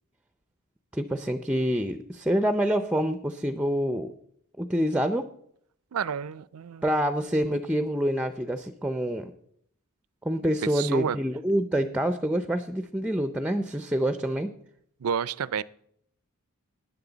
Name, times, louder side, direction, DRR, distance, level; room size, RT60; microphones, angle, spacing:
voice 1, 0.9-4.1 4.6-5.3 6.8-9.3 10.2-14.5, equal, 5° right, 10 dB, 0.5 m, -26 dB
voice 2, 5.9-6.9 10.4-11.2 15.0-15.6, right 7 dB, 75° right, 19 dB, 0.5 m, -30 dB
18.5 x 10.5 x 4.0 m, 0.70 s
head